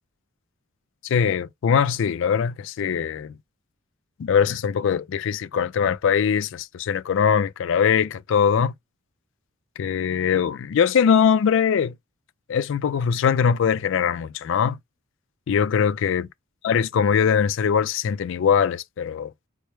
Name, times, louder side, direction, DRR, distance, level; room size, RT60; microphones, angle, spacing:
voice 1, 1.0-3.3 4.2-8.7 9.8-11.9 12.5-14.8 15.5-16.3 16.6-19.3, left 7 dB, 65° left, 0.3 m, -21 dB
4.3 x 2.1 x 3.1 m
head